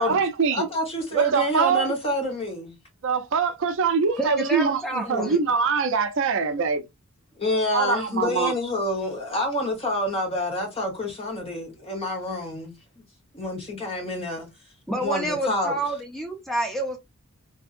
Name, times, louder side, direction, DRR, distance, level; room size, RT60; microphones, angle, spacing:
voice 1, 0.0-0.7 1.1-1.9 3.0-6.8 7.7-8.5, right 5 dB, 60° right, 0.4 m, -23 dB
voice 2, 0.5-2.7 5.0-5.3 7.4-13.0 13.3-14.5 15.0-15.8, left 1 dB, 25° left, 1.1 m, -28 dB
voice 3, 4.2-5.4 14.9-17.0, right 1 dB, ahead, 0.7 m, -28 dB
3.5 x 2.7 x 2.5 m
head